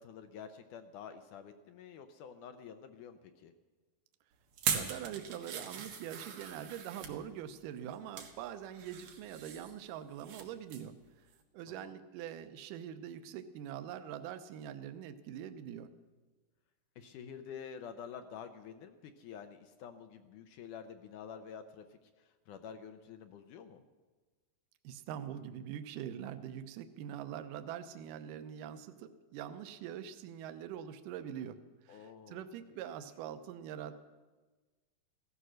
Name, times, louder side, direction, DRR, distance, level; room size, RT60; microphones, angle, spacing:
voice 1, 0.0-3.5 11.8-11.9 17.0-22.0 22.5-23.8 31.9-32.5, left 7 dB, 70° left, 8 dB, 2.0 m, -48 dB
sound 1, 4.5-7.2 7.8-8.3 8.7-10.4 10.7-10.9 11.3-11.4, right 7 dB, 90° right, 3.5 m, -39 dB
voice 2, 4.7-10.9 11.5-15.9 24.8-31.6 31.9-33.9, right 10 dB, 75° right, 9 dB, 2.3 m, -44 dB
16.0 x 14.0 x 6.4 m, 1.3 s
omnidirectional pair, 4.2 m